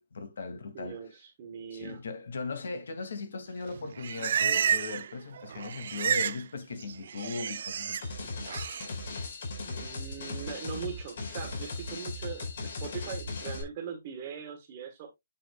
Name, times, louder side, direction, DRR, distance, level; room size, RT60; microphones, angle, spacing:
voice 1, 0.0-1.0 1.7-8.4, left 4 dB, 75° left, 2.5 m, -38 dB
voice 2, 0.7-2.0 9.6-15.1, right 7 dB, 25° right, 1.6 m, -41 dB
Livestock farm animals working animals, 3.7-5.1 5.4-6.4 6.7-8.0 8.5-8.9, right 8 dB, 50° right, 0.5 m, -30 dB
sound 1, 8.0-13.6, left 3 dB, 55° left, 4.6 m, -37 dB
8.4 x 7.7 x 2.3 m
hypercardioid pair, 175°, 0 cm